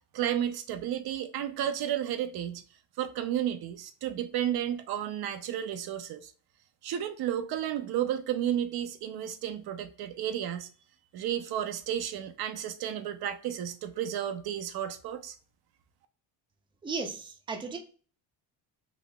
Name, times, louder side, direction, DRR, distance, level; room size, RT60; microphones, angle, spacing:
voice 1, 0.1-2.6 3.0-6.3 6.8-10.7 11.1-15.4, right 10 dB, 65° right, 0.6 m, -32 dB
voice 2, 16.8-17.8, right 4 dB, 10° right, 0.5 m, -35 dB
4.0 x 2.7 x 2.2 m
cardioid pair, 120°, 41 cm